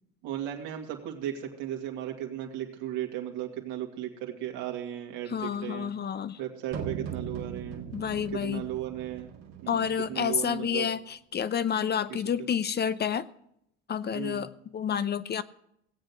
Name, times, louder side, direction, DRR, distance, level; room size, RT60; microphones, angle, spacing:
voice 1, 0.2-5.9 6.4-7.8 8.3-9.3 9.6-10.9 12.1-12.5 14.1-14.5, right 11 dB, 70° right, 2 dB, 2.5 m, -36 dB
voice 2, 5.3-6.4 7.9-8.7 9.7-13.3 13.9-15.4, left 8 dB, 30° left, 15 dB, 0.6 m, -29 dB
sound 1, 6.7-10.7, right 7 dB, 50° right, 1.8 m, -40 dB
17.0 x 8.1 x 6.0 m, 0.76 s
hypercardioid pair, 75°, 33 cm